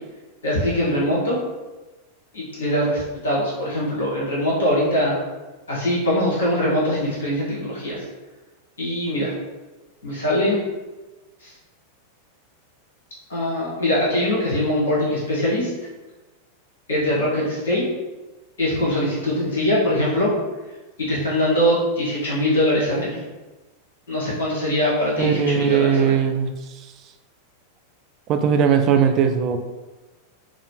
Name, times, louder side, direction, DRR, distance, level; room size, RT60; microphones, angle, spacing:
voice 1, 0.4-1.4 2.3-5.2 5.7-8.1 8.8-9.3 10.0-10.6 11.4-11.5 13.3-15.7 16.9-17.8 18.6-20.3 21.1-23.2 24.1-26.2, left 1 dB, 65° left, -6 dB, 1.2 m, -22 dB
voice 2, 25.2-26.5 28.3-29.6, right 7 dB, 35° right, 7 dB, 0.3 m, -19 dB
4.7 x 2.0 x 3.1 m, 1.2 s
figure-of-eight pair, 90°, 0 cm